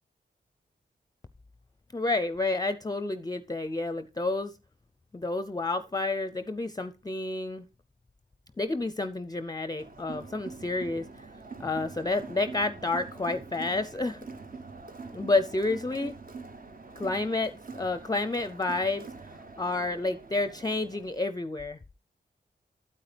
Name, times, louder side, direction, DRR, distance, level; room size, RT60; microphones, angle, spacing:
voice 1, 1.9-4.5 5.1-7.6 8.6-11.3 11.6-14.2 15.1-16.1 17.0-19.1 19.6-21.8, left 2 dB, 20° left, 0.5 m, -30 dB
Crowd, 9.8-21.3, right 4 dB, 50° right, 0.9 m, -44 dB
8.7 x 8.5 x 3.3 m
cardioid pair, 45°, 18 cm